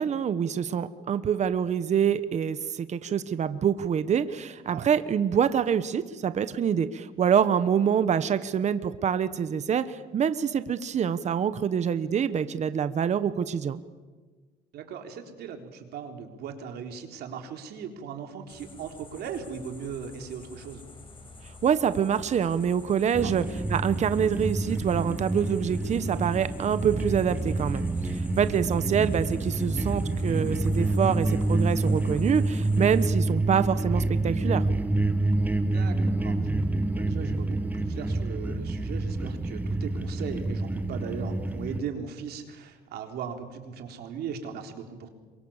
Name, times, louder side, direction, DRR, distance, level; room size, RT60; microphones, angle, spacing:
voice 1, 0.0-13.8 21.6-23.4 23.7-34.6, right 8 dB, 45° right, 13 dB, 1.2 m, -26 dB
voice 2, 14.7-20.8 23.2-23.3 35.7-45.1, right 7 dB, 70° right, 5 dB, 3.9 m, -38 dB
sound 1, 18.5-33.1, left 3 dB, 30° left, 5.4 m, -48 dB
sound 2, 23.1-41.8, right 2 dB, 10° right, 1.6 m, -28 dB
27.5 x 24.0 x 7.4 m, 1.3 s
cardioid pair, 110°, 17 cm